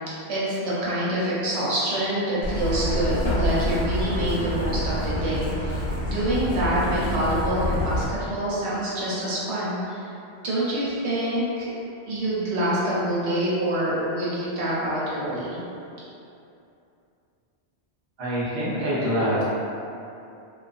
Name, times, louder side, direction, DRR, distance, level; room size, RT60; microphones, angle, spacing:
voice 1, 0.3-10.1 10.4-11.7 12.1-15.6, right 1 dB, 85° right, -8 dB, 1.0 m, -26 dB
Truck, 2.4-8.0, left 1 dB, 85° left, 0.9 m, -27 dB
voice 2, 18.2-19.4, equal, 35° right, -10 dB, 0.5 m, -25 dB
2.3 x 2.2 x 2.5 m, 2.7 s
omnidirectional pair, 1.1 m